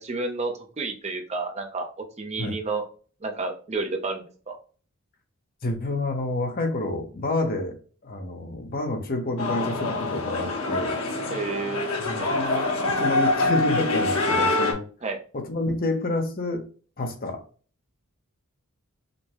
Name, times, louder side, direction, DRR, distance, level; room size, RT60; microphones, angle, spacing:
voice 1, 0.0-2.9 3.2-4.6 11.3-12.3 15.0-15.2, right 3 dB, 30° right, 0.7 m, -31 dB
voice 2, 5.6-11.0 12.0-14.8 15.3-16.7 17.0-17.4, left 2 dB, 45° left, 0.8 m, -28 dB
sound 1, 9.4-14.7, left 2 dB, 90° left, 1.1 m, -25 dB
5.1 x 2.2 x 3.0 m
head